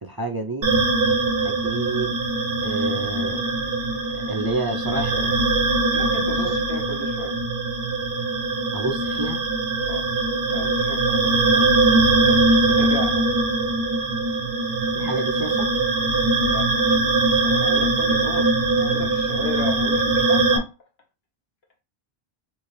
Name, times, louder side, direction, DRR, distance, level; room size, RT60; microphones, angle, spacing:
voice 1, 0.0-0.7 1.4-2.1 2.6-3.4 4.2-5.4 8.7-9.4 14.9-15.7, right 2 dB, 30° right, 0.4 m, -29 dB
sound 1, 0.6-20.6, right 2 dB, 65° right, 1.0 m, -21 dB
voice 2, 5.9-7.4 9.9-10.1 10.5-11.7 12.2-13.3 16.4-16.9 17.4-20.7, left 2 dB, 75° left, 1.5 m, -35 dB
3.5 x 2.7 x 3.2 m
omnidirectional pair, 1.0 m